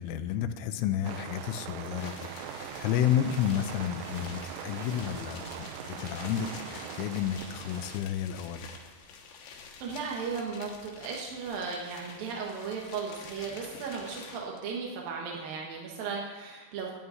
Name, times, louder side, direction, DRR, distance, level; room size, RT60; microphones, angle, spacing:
voice 1, 0.0-2.1 2.4-8.7, left 10 dB, 90° left, 8 dB, 3.2 m, -31 dB
sound 1, 1.0-8.0, right 9 dB, 90° right, 3.2 m, -41 dB
sound 2, 1.9-14.6, left 5 dB, 70° left, 3.4 m, -48 dB
voice 2, 9.8-16.9, right 5 dB, 65° right, -2 dB, 2.5 m, -36 dB
12.5 x 5.5 x 9.2 m, 1.4 s
omnidirectional pair, 5.7 m